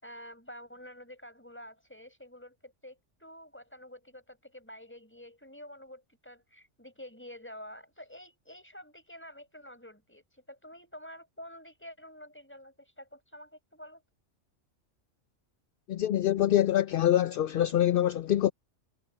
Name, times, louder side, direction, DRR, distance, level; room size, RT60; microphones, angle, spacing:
voice 1, 0.0-14.0, equal, 10° left, 5.2 m, -49 dB
voice 2, 15.9-18.5, left 12 dB, 60° left, 0.6 m, -25 dB
omnidirectional pair, 1.2 m